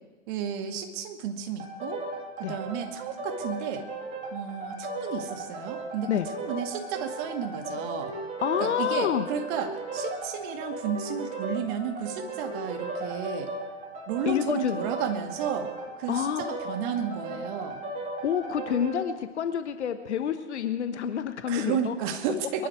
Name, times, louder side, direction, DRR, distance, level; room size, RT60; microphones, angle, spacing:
voice 1, 0.3-2.1 2.4-3.9 4.3-8.1 8.6-13.5 14.1-15.7 16.0-17.8 21.5-22.7, right 7 dB, 45° right, 5 dB, 2.1 m, -32 dB
sound 1, 1.6-19.0, right 2 dB, 20° right, 2.9 m, -36 dB
voice 2, 8.4-9.3 14.3-14.8 16.1-16.4 18.2-21.9, left 9 dB, 65° left, 9 dB, 1.2 m, -28 dB
23.0 x 11.5 x 4.7 m, 1.3 s
hypercardioid pair, 115°, 37 cm